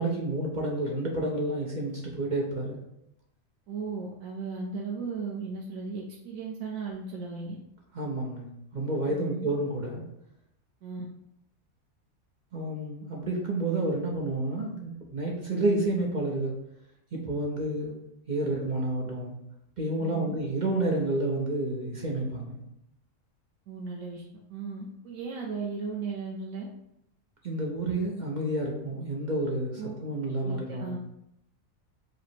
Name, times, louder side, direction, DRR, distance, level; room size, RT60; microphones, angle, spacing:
voice 1, 0.0-2.8 7.9-8.5 8.7-10.0 12.5-16.5 17.1-17.9 18.3-19.4 19.8-22.6 27.4-31.0, right 2 dB, 45° right, -1 dB, 0.6 m, -30 dB
voice 2, 3.7-7.6 9.1-9.5 10.8-11.1 20.0-20.3 23.7-26.7 29.8-29.9 30.4-31.0, right 4 dB, 85° right, -1 dB, 1.1 m, -36 dB
4.8 x 2.0 x 4.3 m, 0.79 s
omnidirectional pair, 1.4 m